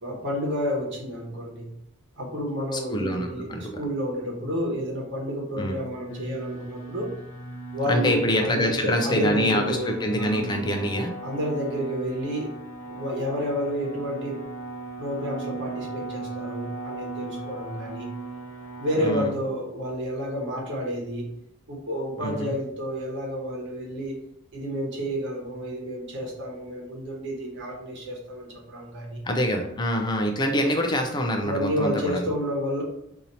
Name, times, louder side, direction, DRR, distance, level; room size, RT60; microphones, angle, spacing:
voice 1, 0.0-1.7 2.2-7.1 7.7-10.4 11.2-12.5 12.9-14.4 15.0-18.1 18.8-21.3 21.7-24.2 24.5-29.2 31.4-32.8, equal, 60° right, -2 dB, 1.1 m, -30 dB
voice 2, 2.7-3.8 5.6-5.7 7.9-11.1 19.0-19.3 22.2-22.5 29.2-32.3, equal, 20° left, 3 dB, 0.3 m, -25 dB
sound 1, 6.1-19.3, right 2 dB, 60° left, 0.6 m, -37 dB
2.7 x 2.7 x 4.2 m, 0.78 s
head